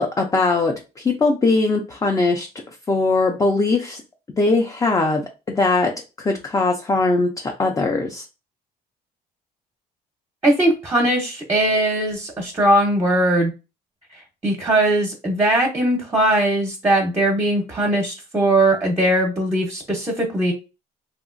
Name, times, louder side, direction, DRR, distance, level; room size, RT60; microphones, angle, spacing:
voice 1, 0.0-2.5 2.9-4.0 4.4-5.2 5.6-5.9 6.2-8.2, left 3 dB, 20° left, 2 dB, 0.4 m, -20 dB
voice 2, 10.4-13.5 14.4-20.5, right 1 dB, 15° right, 0 dB, 0.7 m, -19 dB
2.8 x 2.5 x 2.5 m, 0.29 s
cardioid pair, 110°, 17 cm